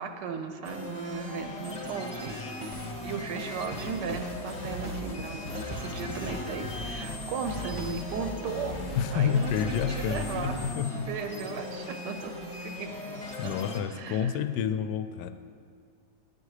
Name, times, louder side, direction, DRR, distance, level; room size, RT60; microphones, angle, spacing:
voice 1, 0.0-8.8 9.1-10.6 11.1-12.9 13.4-13.5 13.9-14.4, right 5 dB, 85° right, 6 dB, 1.3 m, -36 dB
sound 1, 0.6-13.8, left 1 dB, 25° left, 1.0 m, -39 dB
sound 2, 2.2-8.1, right 1 dB, 25° right, 0.9 m, -44 dB
sound 3, 2.7-3.2 3.5-5.2 5.5-10.7, left 2 dB, 55° left, 0.9 m, -40 dB
voice 2, 9.0-11.1 13.4-15.3, left 7 dB, 80° left, 10 dB, 1.2 m, -29 dB
10.0 x 8.6 x 4.9 m, 2.3 s
omnidirectional pair, 1.8 m